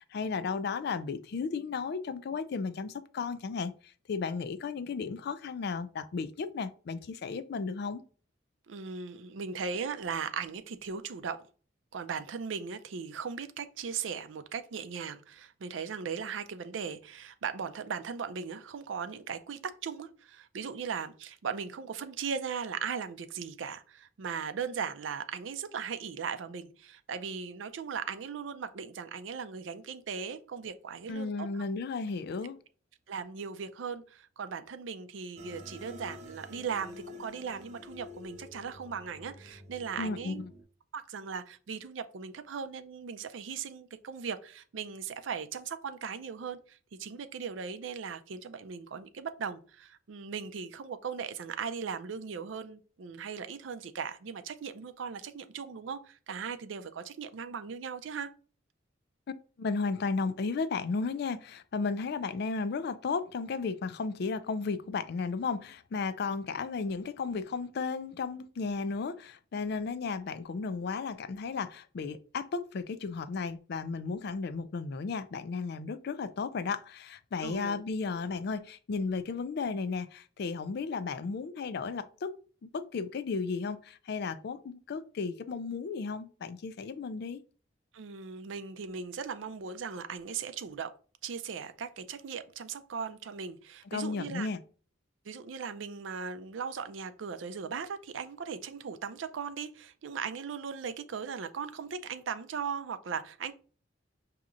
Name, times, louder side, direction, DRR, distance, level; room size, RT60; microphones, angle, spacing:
voice 1, 0.0-8.0 31.1-32.6 40.0-40.5 59.6-82.3 82.7-87.4 93.9-94.6, left 4 dB, 60° left, 0.4 m, -34 dB
voice 2, 8.7-11.4 11.9-31.5 33.1-40.4 40.9-58.3 77.4-77.8 87.9-90.9 91.2-94.5 95.2-103.5, right 6 dB, 85° right, 0.5 m, -38 dB
sound 1, 35.4-40.6, left 2 dB, 40° right, 0.7 m, -49 dB
6.0 x 2.8 x 2.5 m
head